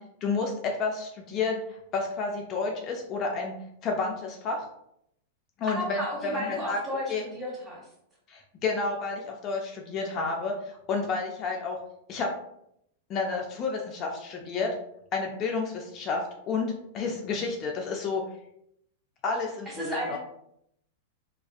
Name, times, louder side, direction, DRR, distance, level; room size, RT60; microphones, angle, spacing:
voice 1, 0.2-3.5 3.8-4.6 5.6-6.8 7.1-7.2 8.3-11.8 12.1-12.3 13.1-14.7 15.1-18.2 19.2-20.2, left 4 dB, 40° left, 1 dB, 0.4 m, -30 dB
voice 2, 5.7-7.9 19.7-20.2, equal, 15° right, -5 dB, 1.3 m, -33 dB
2.4 x 2.3 x 2.3 m, 0.75 s
hypercardioid pair, 110°, 0 cm